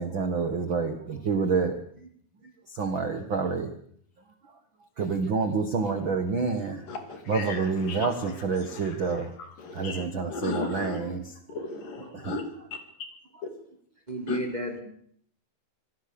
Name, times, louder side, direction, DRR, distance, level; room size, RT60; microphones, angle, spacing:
voice 1, 0.0-1.8 2.7-3.7 5.0-6.9 7.3-9.3 9.7-11.2 12.1-12.3, right 4 dB, 45° right, 6 dB, 1.7 m, -28 dB
voice 2, 6.9-8.3 8.6-11.0 11.5-12.4 12.7-12.8 13.4-13.5 14.3-14.4, left 3 dB, 65° left, 5 dB, 4.4 m, -36 dB
voice 3, 14.1-14.8, right 1 dB, 10° right, 4 dB, 3.5 m, -31 dB
25.5 x 18.0 x 7.0 m, 0.65 s
omnidirectional pair, 4.2 m